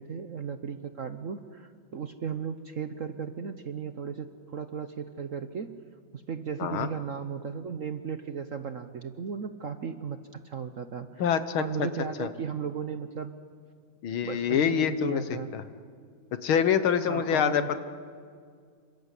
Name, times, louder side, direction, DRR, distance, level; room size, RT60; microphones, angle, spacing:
voice 1, 0.0-5.8 6.1-10.2 10.4-11.2 11.6-13.3 14.2-15.5 17.1-17.7, right 6 dB, 55° right, 9 dB, 1.0 m, -36 dB
voice 2, 11.2-11.9 12.2-12.3 14.0-15.6 16.4-17.8, left 8 dB, 75° left, 11 dB, 2.0 m, -26 dB
28.0 x 25.0 x 8.3 m, 2.1 s
omnidirectional pair, 2.3 m